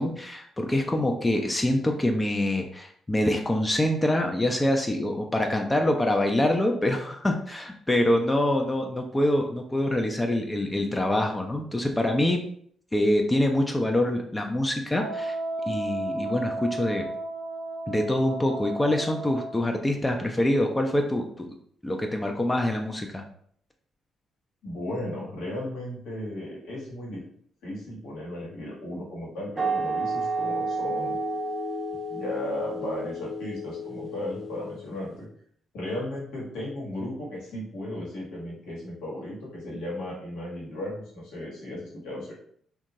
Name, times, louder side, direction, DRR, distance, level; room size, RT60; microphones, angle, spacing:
voice 1, 0.0-12.4 12.9-15.4 15.7-17.1 17.9-21.6 21.8-23.2, left 1 dB, 20° left, 3 dB, 0.4 m, -25 dB
Wind instrument woodwind instrument, 14.9-19.7, right 2 dB, 80° right, 0.6 m, -34 dB
voice 2, 24.6-27.2 27.6-31.2 32.1-35.3 35.7-42.3, left 1 dB, 70° left, -5 dB, 1.1 m, -35 dB
sound 1, 29.6-35.0, right 2 dB, 35° right, 0.5 m, -31 dB
2.8 x 2.3 x 2.7 m, 0.62 s
hypercardioid pair, 40°, 0 cm